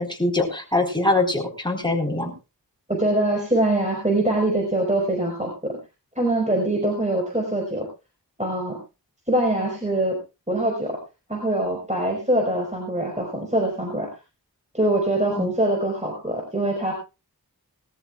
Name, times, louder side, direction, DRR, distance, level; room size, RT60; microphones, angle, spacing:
voice 1, 0.0-2.3 15.3-15.5, left 2 dB, 10° left, 1 dB, 4.3 m, -23 dB
voice 2, 2.9-5.8 6.1-7.9 8.4-8.8 9.3-10.2 10.5-11.0 11.3-14.1 14.7-16.9, right 1 dB, 20° right, 0 dB, 4.9 m, -23 dB
21.0 x 14.0 x 2.4 m, 0.29 s
wide cardioid pair, 45°, 38 cm